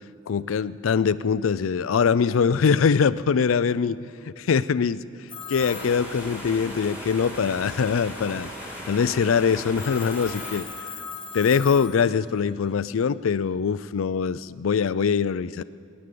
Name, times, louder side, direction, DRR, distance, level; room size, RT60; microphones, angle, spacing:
voice 1, 0.3-8.5 8.9-10.7 11.3-15.6, left 6 dB, 85° left, 17 dB, 0.4 m, -23 dB
Telephone, 5.3-6.8 9.8-12.6, left 6 dB, 25° left, 1.0 m, -39 dB
sound 1, 5.6-10.6, equal, 10° right, 2.5 m, -38 dB
18.5 x 11.0 x 6.8 m, 2.5 s
head